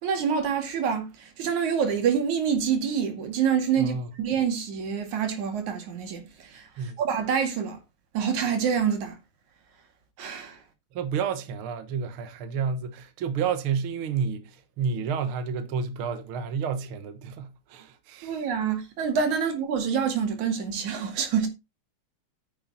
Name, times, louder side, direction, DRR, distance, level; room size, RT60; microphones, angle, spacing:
voice 1, 0.0-7.8 8.1-9.2 10.2-10.6 18.2-21.5, right 7 dB, 75° right, 3.5 m, -27 dB
voice 2, 3.8-4.1 6.8-7.0 10.9-18.5, right 6 dB, 55° right, 1.8 m, -30 dB
9.7 x 7.7 x 4.2 m
omnidirectional pair, 3.5 m